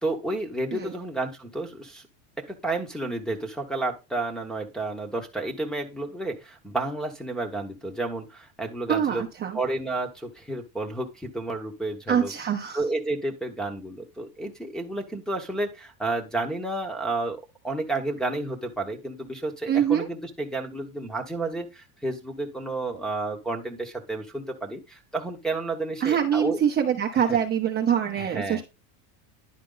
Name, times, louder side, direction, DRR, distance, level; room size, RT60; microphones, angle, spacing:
voice 1, 0.0-2.0 2.5-9.2 9.5-12.3 12.7-26.6 27.3-27.4 28.2-28.6, right 2 dB, ahead, -1 dB, 1.0 m, -31 dB
voice 2, 8.9-9.6 12.1-12.8 19.7-20.1 26.0-28.6, right 8 dB, 25° right, 1 dB, 0.8 m, -24 dB
10.5 x 4.5 x 3.8 m, 0.27 s
cardioid pair, 160°, 43 cm